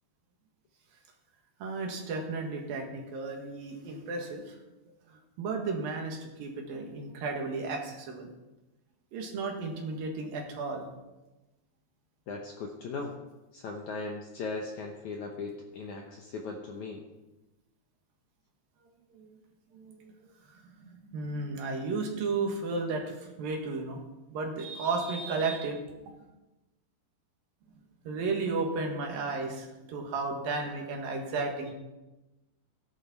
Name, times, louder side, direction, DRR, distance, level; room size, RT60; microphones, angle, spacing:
voice 1, 1.6-4.6 5.1-8.3 9.1-10.9 19.1-19.3 19.7-24.0 24.3-25.8 28.0-31.7, right 3 dB, 65° right, 2 dB, 3.2 m, -34 dB
voice 2, 12.3-13.1 13.5-17.0, left 3 dB, 70° left, 1 dB, 1.9 m, -38 dB
16.0 x 11.0 x 4.3 m, 1.0 s
omnidirectional pair, 4.6 m